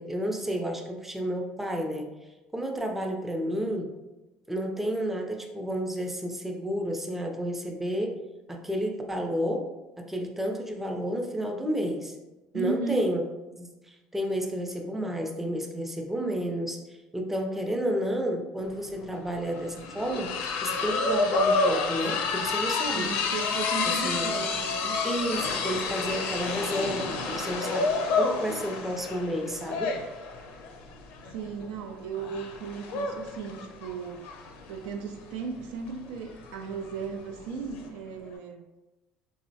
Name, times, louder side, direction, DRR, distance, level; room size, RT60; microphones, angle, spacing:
voice 1, 0.0-2.1 2.5-3.9 4.5-8.2 8.5-12.2 12.5-13.2 13.6-23.1 23.9-24.3 25.0-27.9 28.2-29.9, equal, 10° right, 2 dB, 0.4 m, -31 dB
voice 2, 12.5-13.1 22.9-25.0 31.3-34.3 34.7-38.7, right 5 dB, 85° right, 5 dB, 0.3 m, -36 dB
sound 1, 18.7-18.8 19.0-37.9, left 4 dB, 75° left, 0.4 m, -30 dB
3.6 x 2.0 x 2.6 m, 1.1 s
supercardioid pair, 110°, 3 cm